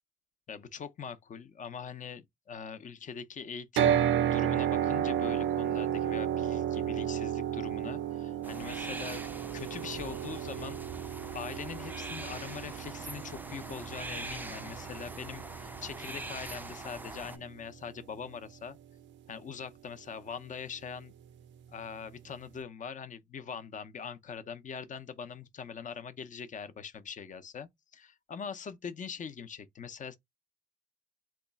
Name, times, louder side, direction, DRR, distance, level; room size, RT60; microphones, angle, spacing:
voice 1, 0.5-9.2 9.5-10.8 11.3-18.8 19.3-21.1 21.7-30.2, left 6 dB, 40° left, 0.6 m, -42 dB
sound 1, 3.8-17.9, right 10 dB, 70° right, 0.4 m, -33 dB
sound 2, 8.4-17.4, right 2 dB, 10° right, 0.4 m, -43 dB
2.9 x 2.3 x 4.0 m
cardioid pair, 90°, 20 cm